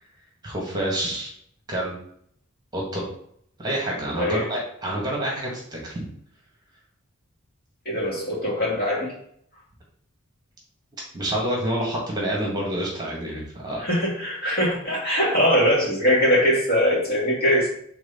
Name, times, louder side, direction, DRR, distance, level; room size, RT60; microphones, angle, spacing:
voice 1, 0.4-1.3 1.7-2.0 2.7-3.0 3.6-6.0 11.1-13.8, right 1 dB, 20° right, -3 dB, 1.8 m, -28 dB
voice 2, 7.9-9.1 13.8-17.7, equal, 45° left, -4 dB, 2.4 m, -21 dB
4.7 x 3.8 x 5.7 m, 0.66 s
head